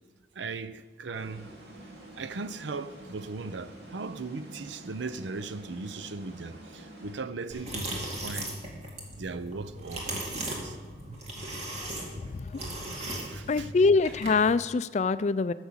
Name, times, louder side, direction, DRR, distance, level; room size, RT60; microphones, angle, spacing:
voice 1, 0.3-1.5 2.2-8.6 9.2-10.8 11.1-11.2 13.0-13.7, right 3 dB, 90° right, 0.6 m, -38 dB
sound 1, 1.1-7.7, right 1 dB, 65° right, 2.4 m, -48 dB
sound 2, 7.5-14.5, right 1 dB, 40° right, 2.3 m, -38 dB
voice 2, 13.5-15.5, left 4 dB, 40° left, 0.3 m, -24 dB
14.0 x 6.2 x 7.2 m
head